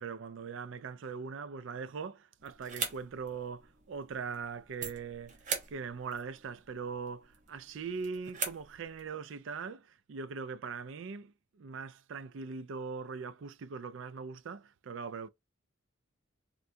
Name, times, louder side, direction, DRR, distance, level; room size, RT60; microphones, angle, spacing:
voice 1, 0.0-5.4 5.7-15.3, right 5 dB, 60° right, 0.4 m, -41 dB
sound 1, 2.4-9.1, right 5 dB, 35° right, 0.8 m, -42 dB
3.7 x 2.2 x 2.6 m
head